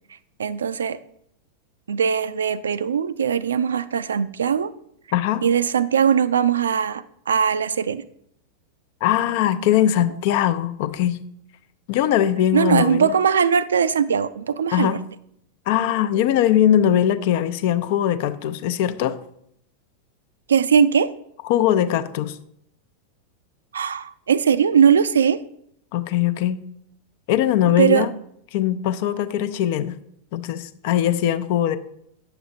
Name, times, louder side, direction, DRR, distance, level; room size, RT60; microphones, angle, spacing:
voice 1, 0.4-1.0 1.9-4.7 5.4-8.0 12.5-15.0 20.5-21.1 23.7-25.4 27.8-28.1, right 7 dB, 70° right, 15 dB, 0.4 m, -20 dB
voice 2, 5.1-5.4 9.0-11.2 11.9-13.1 14.7-15.0 15.7-19.2 21.4-22.4 25.9-26.6 27.3-28.1 28.5-30.0 30.3-31.8, left 11 dB, 50° left, 12 dB, 0.5 m, -21 dB
9.2 x 6.9 x 2.7 m, 0.71 s
figure-of-eight pair, 90°, 0 cm